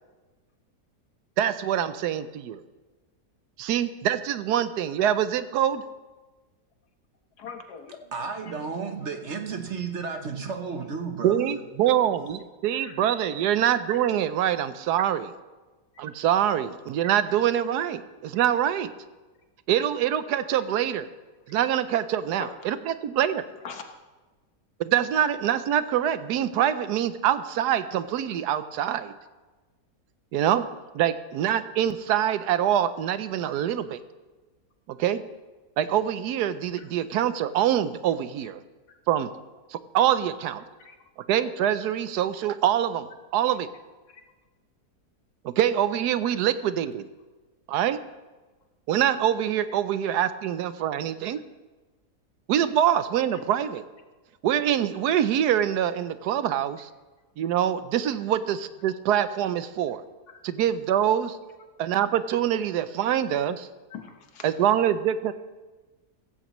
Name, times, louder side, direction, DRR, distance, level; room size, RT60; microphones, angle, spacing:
voice 1, 1.4-2.6 3.6-5.8 11.2-15.3 16.0-18.9 19.7-21.1 21.5-23.4 24.8-29.1 30.3-30.6 30.9-34.0 34.9-35.2 35.8-38.6 39.1-39.3 39.7-40.6 41.3-43.1 43.3-43.7 45.4-47.1 47.7-48.0 48.9-51.4 52.5-53.8 54.4-56.9 57.4-60.0 60.4-61.4 61.8-63.7 64.4-65.3, right 10 dB, 80° right, 13 dB, 1.2 m, -25 dB
voice 2, 7.4-8.0 8.4-8.5 10.0-10.2 12.8-13.0 22.3-22.8 23.6-23.8 33.5-33.6 36.8-36.9 38.9-39.0 40.8-41.0 44.1-44.2 50.8-50.9 53.3-53.4 60.3-60.4 63.9-64.6, left 6 dB, 75° left, 5 dB, 1.7 m, -42 dB
voice 3, 8.1-11.6, right 5 dB, 50° right, 6 dB, 1.1 m, -33 dB
16.0 x 15.0 x 3.1 m, 1.2 s
omnidirectional pair, 1.7 m